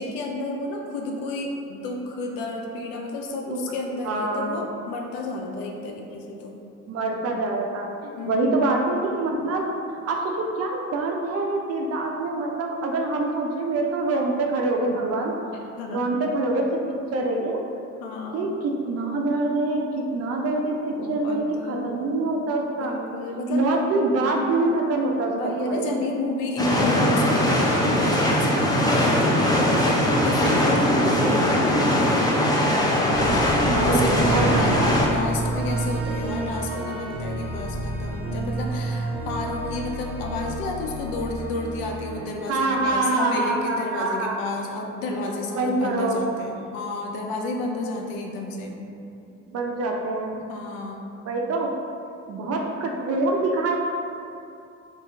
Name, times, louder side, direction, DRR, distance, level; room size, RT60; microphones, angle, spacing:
voice 1, 0.0-6.6 8.2-8.6 15.8-16.1 18.0-18.5 20.9-21.9 22.8-23.7 25.3-31.7 33.1-34.7 35.0-48.8 50.5-51.0, left 2 dB, 65° left, 1 dB, 0.6 m, -31 dB
voice 2, 4.0-4.6 6.9-9.8 10.1-15.3 15.9-16.7 17.1-17.6 18.3-19.8 20.1-23.0 23.5-26.0 33.7-34.9 42.5-44.3 45.6-46.3 49.5-50.4 51.3-51.8 52.3-53.8, right 2 dB, 40° right, 1 dB, 0.5 m, -25 dB
sound 1, 26.6-35.1, left 1 dB, 10° left, 0.5 m, -20 dB
sound 2, 33.1-43.3, right 2 dB, 80° right, 0.7 m, -30 dB
2.8 x 2.8 x 3.4 m, 2.6 s
hypercardioid pair, 50°, 38 cm